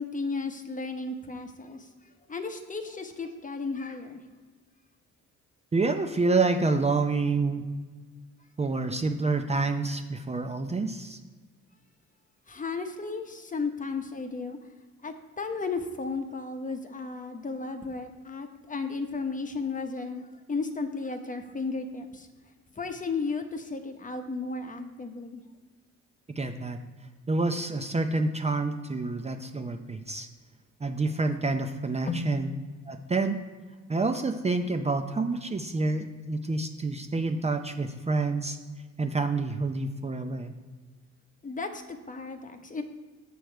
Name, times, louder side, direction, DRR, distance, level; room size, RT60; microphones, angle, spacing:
voice 1, 0.0-1.9 2.3-4.2 12.5-14.6 15.0-22.3 22.8-25.4 32.1-32.3 41.4-42.8, left 4 dB, 25° left, 7 dB, 0.9 m, -34 dB
voice 2, 5.7-7.6 8.6-11.2 26.3-26.8 27.3-30.3 30.8-32.5 32.9-33.4 33.9-38.6 39.0-40.5, right 3 dB, 20° right, 6 dB, 0.5 m, -28 dB
6.9 x 6.4 x 4.5 m, 1.4 s
cardioid pair, 90°, 30 cm